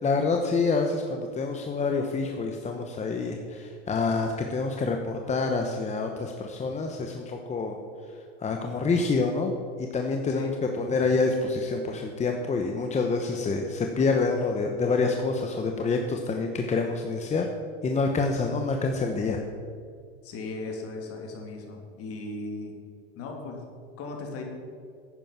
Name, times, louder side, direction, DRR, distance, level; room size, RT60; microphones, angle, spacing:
voice 1, 0.0-7.8 8.4-9.5 9.8-10.5 10.8-17.5 17.8-19.4, left 4 dB, 20° left, 3 dB, 1.1 m, -27 dB
voice 2, 20.2-22.7 23.1-23.6 24.0-24.4, left 3 dB, 45° left, 1 dB, 3.1 m, -37 dB
11.0 x 9.0 x 5.9 m, 2.3 s
hypercardioid pair, 95°, 31 cm